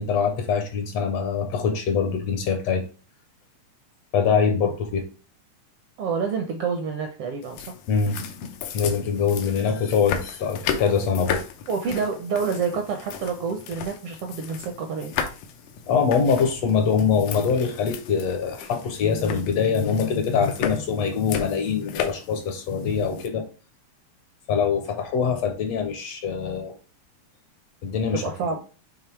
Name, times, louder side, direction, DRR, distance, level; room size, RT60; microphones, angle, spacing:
voice 1, 0.0-2.8 4.1-5.1 7.9-11.4 15.9-23.5 24.5-26.8 27.8-28.2, left 6 dB, 70° left, 1.7 m, -24 dB
voice 2, 6.0-7.6 11.7-15.1 28.1-28.6, right 5 dB, 75° right, 1.4 m, -28 dB
sound 1, 7.4-23.3, left 8 dB, 85° left, 2.3 m, -35 dB
7.1 x 3.1 x 4.5 m
omnidirectional pair, 3.4 m